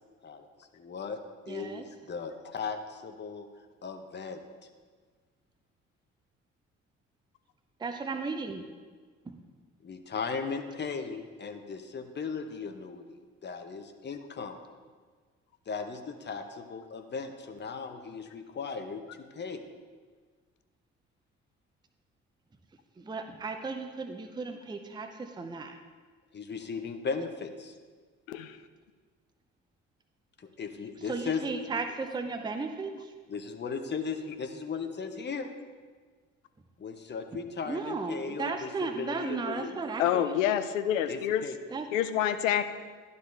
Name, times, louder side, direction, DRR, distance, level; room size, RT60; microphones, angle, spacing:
voice 1, 0.7-1.2 1.5-3.5 3.8-4.4 9.8-14.6 15.7-19.0 19.3-19.6 26.3-27.7 30.4-31.4 33.3-35.5 36.8-39.8 41.0-41.6, left 5 dB, 25° left, 6 dB, 0.9 m, -37 dB
voice 2, 1.5-1.8 7.8-8.6 9.3-9.4 23.0-25.8 31.1-33.1 37.6-40.4 41.7-41.9, right 4 dB, 10° right, 6 dB, 0.6 m, -35 dB
voice 3, 28.3-28.6 40.0-41.4 41.9-42.6, left 10 dB, 80° left, 11 dB, 0.5 m, -27 dB
11.5 x 4.0 x 3.3 m, 1.5 s
figure-of-eight pair, 45°, 38 cm